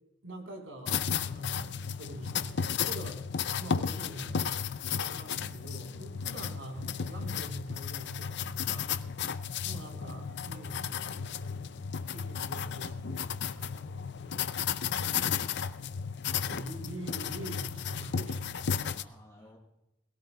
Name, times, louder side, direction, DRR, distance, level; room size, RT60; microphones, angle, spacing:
voice 1, 0.2-3.2 3.6-4.5 5.0-8.9 9.6-11.0 12.1-14.4 15.2-15.6 16.3-19.0, right 1 dB, 80° right, 2 dB, 4.0 m, -45 dB
sound 1, 0.9-19.0, left 7 dB, 60° left, 0.5 m, -34 dB
sound 2, 10.1-13.7, equal, 40° right, 2.6 m, -63 dB
voice 2, 15.4-17.0 19.0-19.6, left 1 dB, 15° left, -4 dB, 6.5 m, -60 dB
21.5 x 17.0 x 2.3 m, 0.91 s
head